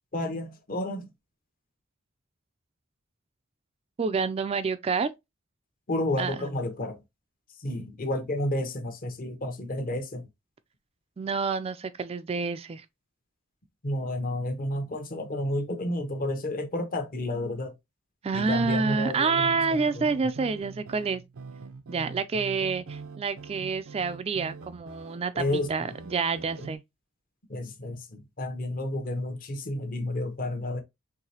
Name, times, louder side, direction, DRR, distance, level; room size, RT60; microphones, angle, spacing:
voice 1, 0.1-1.1 5.9-7.0 7.6-10.3 13.8-17.7 18.3-20.1 25.3-25.9 27.5-30.8, left 1 dB, 45° left, 0.9 m, -31 dB
voice 2, 4.0-5.1 6.2-6.4 11.2-12.8 18.2-21.2 21.9-26.8, right 5 dB, 30° right, 0.3 m, -28 dB
sound 1, 18.4-26.8, right 4 dB, 80° right, 0.5 m, -43 dB
4.7 x 3.3 x 2.7 m
head